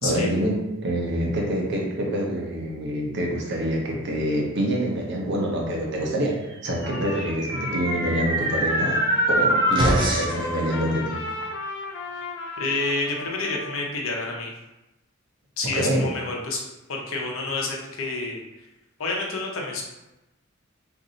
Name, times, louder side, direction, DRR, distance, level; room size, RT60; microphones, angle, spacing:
voice 1, 0.0-9.0 9.3-11.2 15.7-16.1, right 1 dB, 55° right, -1 dB, 0.7 m, -26 dB
Trumpet, 6.8-14.0, left 2 dB, 55° left, 0.4 m, -34 dB
sound 1, 6.8-10.5, right 1 dB, 25° right, 0.5 m, -24 dB
voice 2, 12.6-14.5 15.6-16.6 16.9-18.4 19.0-19.8, left 3 dB, 75° left, -1 dB, 0.8 m, -28 dB
2.6 x 2.5 x 3.9 m, 0.97 s
head